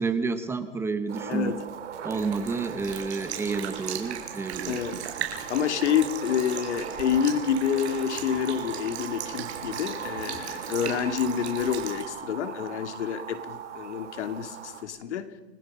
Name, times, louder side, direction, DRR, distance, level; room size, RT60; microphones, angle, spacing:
voice 1, 0.0-1.6 2.0-4.8 5.2-5.4, right 4 dB, 5° right, 0.9 m, -30 dB
sound 1, 1.1-14.8, right 8 dB, 85° right, 2.9 m, -39 dB
voice 2, 1.3-1.6 4.7-5.1 5.5-15.3, left 8 dB, 75° left, 2.8 m, -28 dB
Sink (filling or washing) / Liquid, 2.1-12.0, right 9 dB, 65° right, 5.0 m, -38 dB
29.0 x 21.5 x 5.6 m
hypercardioid pair, 160°, 35 cm